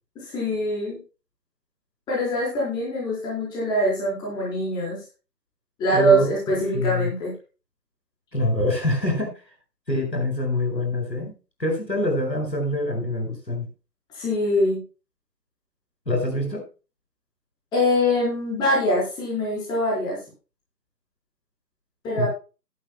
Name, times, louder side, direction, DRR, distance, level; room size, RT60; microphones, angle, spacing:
voice 1, 0.2-1.0 2.1-5.0 5.8-7.3 14.1-14.8 17.7-20.2 22.0-22.3, equal, 10° left, -5 dB, 4.2 m, -23 dB
voice 2, 5.9-6.3 6.7-7.1 8.3-9.4 9.9-13.7 16.1-16.6 22.1-22.3, left 1 dB, 90° left, 2 dB, 7.7 m, -25 dB
16.0 x 11.5 x 2.2 m, 0.32 s
figure-of-eight pair, 150°, 49 cm